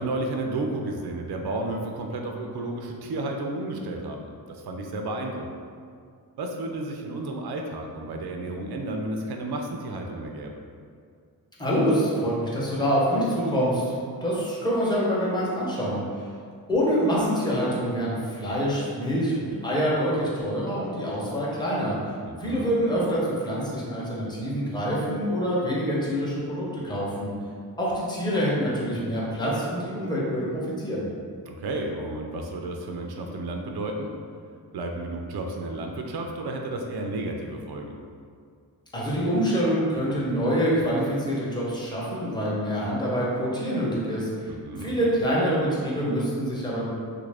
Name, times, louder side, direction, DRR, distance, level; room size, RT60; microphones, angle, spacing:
voice 1, 0.0-5.6 6.4-10.5 22.2-22.7 31.5-34.1 34.7-38.0 44.5-45.1, right 2 dB, 75° right, 2 dB, 0.5 m, -32 dB
voice 2, 11.6-14.0 14.2-16.3 16.7-22.0 22.4-27.3 27.8-31.1 38.9-44.5 44.8-46.9, equal, 10° left, -6 dB, 0.7 m, -26 dB
3.3 x 2.5 x 3.3 m, 2.2 s
wide cardioid pair, 160°, 38 cm